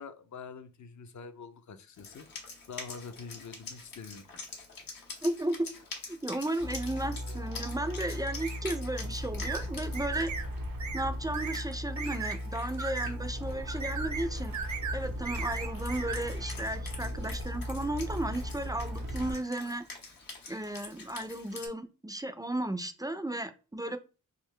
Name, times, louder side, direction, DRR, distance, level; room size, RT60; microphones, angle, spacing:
voice 1, 0.0-2.3 2.7-4.3, left 5 dB, 55° left, 0.6 m, -45 dB
Wind instrument woodwind instrument, 1.9-21.7, left 4 dB, 85° left, 1.3 m, -47 dB
voice 2, 5.2-5.7 6.1-10.3 10.9-14.5 14.9-19.8 20.5-24.0, right 1 dB, 10° right, 0.4 m, -34 dB
sound 1, 6.6-19.3, equal, 85° right, 0.9 m, -37 dB
sound 2, 8.4-8.6 9.4-9.6 9.9-10.5 10.8-11.1 11.3-11.6 12.0-12.4 12.8-13.1 13.7-14.3 14.5-15.0 15.2-16.2, right 6 dB, 55° right, 0.7 m, -37 dB
3.7 x 2.7 x 3.2 m
cardioid pair, 70°, 33 cm